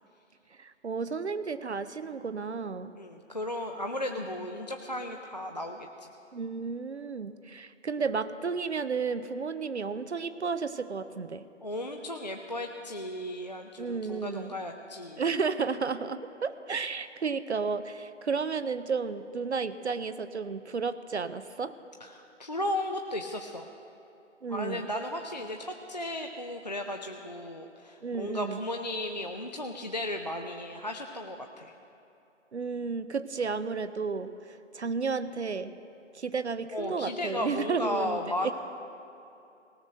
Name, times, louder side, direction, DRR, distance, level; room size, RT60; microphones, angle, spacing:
voice 1, 0.6-2.9 4.1-4.2 6.3-11.5 13.8-14.5 15.2-21.7 24.4-24.8 28.0-28.6 32.5-35.7 36.1-38.5, right 5 dB, 65° right, 13 dB, 0.6 m, -32 dB
voice 2, 2.9-6.1 11.6-15.2 22.0-23.7 24.5-31.7 36.7-38.5, left 1 dB, 35° left, 3 dB, 0.5 m, -35 dB
18.0 x 6.1 x 6.5 m, 2.7 s
figure-of-eight pair, 155°, 37 cm